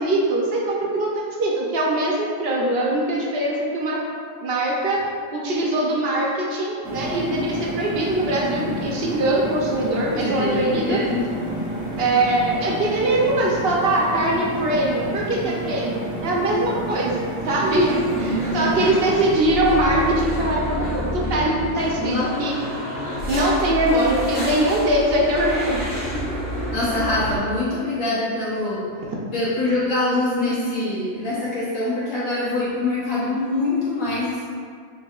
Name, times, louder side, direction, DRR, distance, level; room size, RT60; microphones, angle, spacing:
voice 1, 0.0-4.0 4.4-5.0 5.3-11.0 12.0-22.5 23.3-25.9, right 1 dB, 60° right, -3 dB, 0.7 m, -22 dB
sound 1, 6.8-19.3, right 1 dB, 5° right, 0.5 m, -30 dB
voice 2, 10.2-11.3 18.1-19.0 22.0-22.3 26.7-28.9 29.3-34.5, left 2 dB, 90° left, -9 dB, 1.4 m, -24 dB
sound 2, 17.6-27.4, equal, 65° left, 1.3 m, -29 dB
5.4 x 2.9 x 2.4 m, 2.1 s
omnidirectional pair, 1.4 m